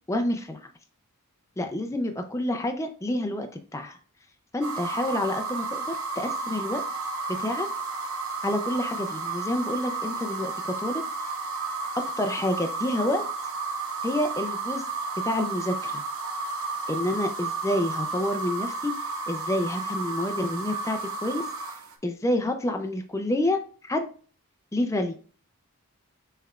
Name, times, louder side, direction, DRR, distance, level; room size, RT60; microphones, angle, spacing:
voice 1, 0.1-0.6 1.6-4.0 4.5-6.8 7.4-7.7 8.4-11.3 12.2-13.2 14.0-14.9 15.2-16.0 16.9-21.5 22.0-24.1 24.7-25.1, left 1 dB, 15° left, 5 dB, 0.4 m, -28 dB
sound 1, 4.6-21.9, right 3 dB, 65° right, 0.7 m, -32 dB
5.6 x 3.3 x 2.3 m, 0.39 s
head